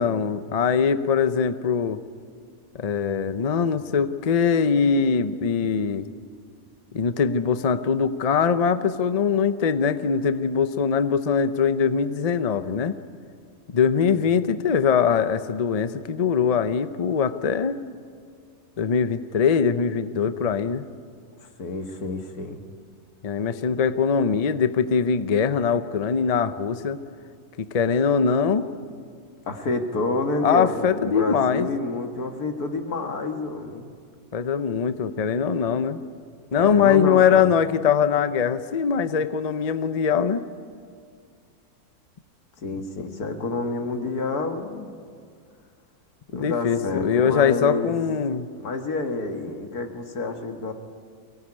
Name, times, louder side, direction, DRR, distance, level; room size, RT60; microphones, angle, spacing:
voice 1, 0.0-2.0 2.7-6.1 6.9-12.9 13.7-17.8 18.8-20.8 23.2-27.0 27.6-28.7 30.4-31.7 34.3-36.0 36.5-40.4 46.3-48.5, left 6 dB, 40° left, 11 dB, 0.6 m, -22 dB
voice 2, 21.6-22.6 29.5-33.9 36.5-37.4 42.6-44.9 46.3-48.0 48.6-50.7, left 3 dB, 85° left, 5 dB, 2.2 m, -29 dB
24.0 x 18.0 x 9.9 m, 2.2 s
omnidirectional pair, 1.6 m